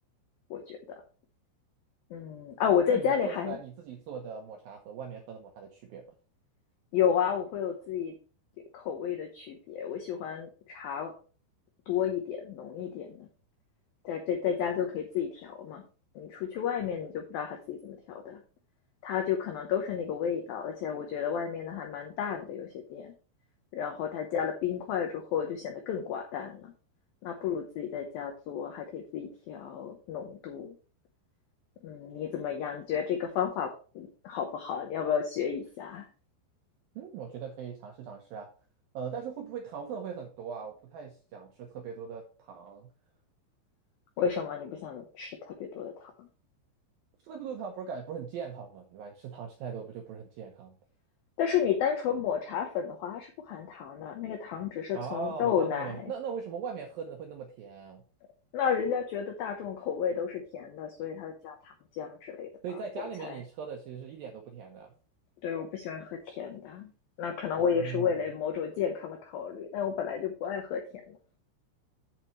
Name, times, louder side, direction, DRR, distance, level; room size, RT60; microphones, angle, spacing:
voice 1, 0.5-1.0 2.1-3.6 6.9-8.1 8.7-11.1 11.9-13.3 14.0-15.8 16.2-18.4 19.0-23.1 23.7-26.7 27.2-30.8 31.8-36.1 44.2-46.3 51.4-56.1 58.5-63.4 65.4-66.9 67.2-71.2, left 8 dB, 90° left, 4 dB, 2.0 m, -32 dB
voice 2, 2.9-6.2 37.0-38.5 38.9-42.9 47.2-50.8 54.9-58.0 62.6-64.9 67.6-68.2, right 6 dB, 80° right, 3 dB, 2.1 m, -40 dB
8.8 x 7.7 x 3.1 m, 0.38 s
omnidirectional pair, 5.5 m